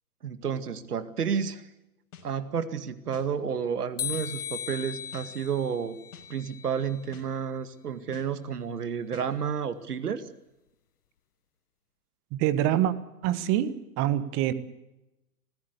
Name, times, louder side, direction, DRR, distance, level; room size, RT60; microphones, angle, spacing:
voice 1, 0.2-1.7 2.2-6.0 6.3-10.2, right 7 dB, 85° right, 11 dB, 2.2 m, -31 dB
sound 1, 2.1-2.3 3.1-3.3 4.1-4.3 5.1-5.3 6.1-6.3 7.1-7.3 8.1-8.3 9.1-9.3, left 8 dB, 55° left, 5.6 m, -48 dB
sound 2, 4.0-7.1, left 9 dB, 75° left, 1.5 m, -38 dB
voice 2, 12.3-12.9 13.2-14.5, right 12 dB, 30° right, 13 dB, 1.5 m, -25 dB
26.0 x 16.0 x 8.2 m, 0.95 s
hypercardioid pair, 140°, 45 cm